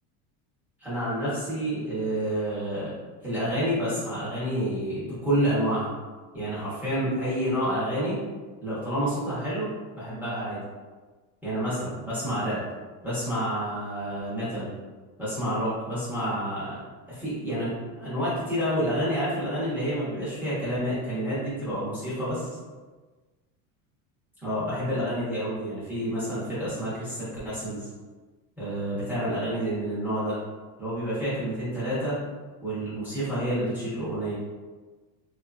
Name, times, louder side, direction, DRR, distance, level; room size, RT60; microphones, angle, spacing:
voice 1, 0.8-2.9 3.2-5.9 6.3-8.2 8.6-9.7 9.9-10.6 11.4-12.6 13.0-14.7 15.2-16.8 17.1-22.5 24.4-27.9 28.6-30.4 30.8-32.2 32.6-34.3, equal, 5° right, -13 dB, 0.8 m, -29 dB
2.6 x 2.4 x 2.4 m, 1.3 s
cardioid pair, 165°, 43 cm